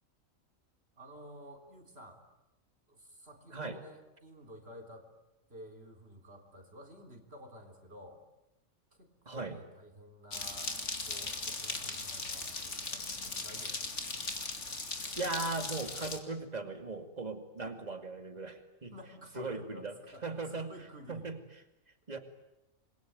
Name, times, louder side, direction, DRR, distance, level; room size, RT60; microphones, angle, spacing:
voice 1, 1.0-2.2 2.9-5.1 5.5-8.2 8.9-10.7 11.1-14.1 18.9-21.3, equal, 45° right, 3 dB, 3.8 m, -52 dB
voice 2, 9.3-9.6 15.1-18.9 19.3-19.9 20.2-20.7 21.1-21.6 22.1-22.2, right 3 dB, 30° right, 6 dB, 2.6 m, -38 dB
sound 1, 10.3-16.2, left 3 dB, 60° left, 2.8 m, -38 dB
28.0 x 22.5 x 9.5 m, 0.96 s
omnidirectional pair, 1.4 m